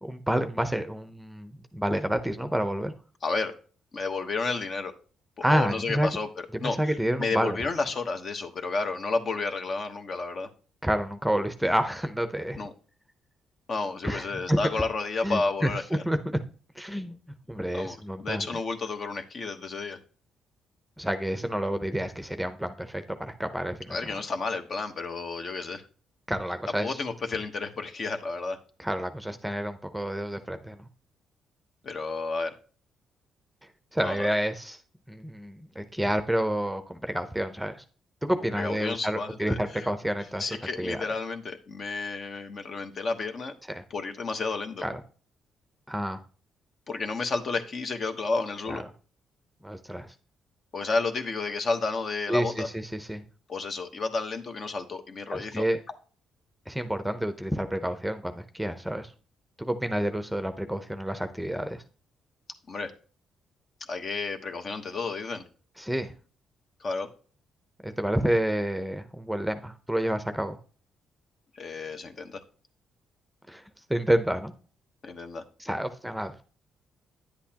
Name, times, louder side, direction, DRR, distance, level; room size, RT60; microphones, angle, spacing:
voice 1, 0.0-2.9 5.4-6.1 6.5-7.6 10.8-12.6 14.0-14.6 15.2-15.7 16.1-16.2 16.8-17.2 17.5-18.5 21.0-24.2 26.3-27.0 28.8-30.9 33.9-34.8 35.1-37.8 38.2-41.0 43.7-43.8 44.8-45.0 45.9-46.2 48.7-48.8 49.6-50.1 52.3-53.2 55.3-55.8 56.7-59.1 59.6-61.8 65.8-66.1 67.8-70.6 73.5-73.6 73.9-74.5 75.6-76.3, equal, ahead, 9 dB, 0.7 m, -29 dB
voice 2, 3.2-3.5 3.9-4.9 5.5-6.8 7.2-10.5 12.6-12.7 13.7-16.0 17.7-20.0 23.9-25.8 26.8-28.6 31.8-32.5 34.0-34.3 38.6-39.9 40.4-43.5 43.9-44.8 46.9-48.8 50.7-52.7 53.5-55.6 62.7-62.9 63.9-65.4 66.8-67.1 71.5-72.4 75.0-75.4, left 3 dB, 50° left, 6 dB, 1.1 m, -31 dB
10.0 x 8.2 x 2.9 m, 0.40 s
cardioid pair, 90°, 0 cm